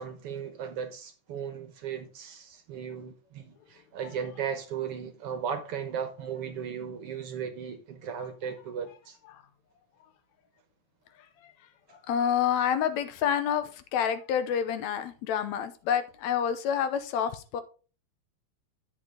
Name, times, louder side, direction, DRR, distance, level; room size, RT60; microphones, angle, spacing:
voice 1, 0.0-9.2, right 7 dB, 65° right, 1.7 m, -36 dB
voice 2, 12.1-17.6, left 8 dB, 75° left, 2.1 m, -28 dB
10.5 x 7.1 x 3.7 m
omnidirectional pair, 3.3 m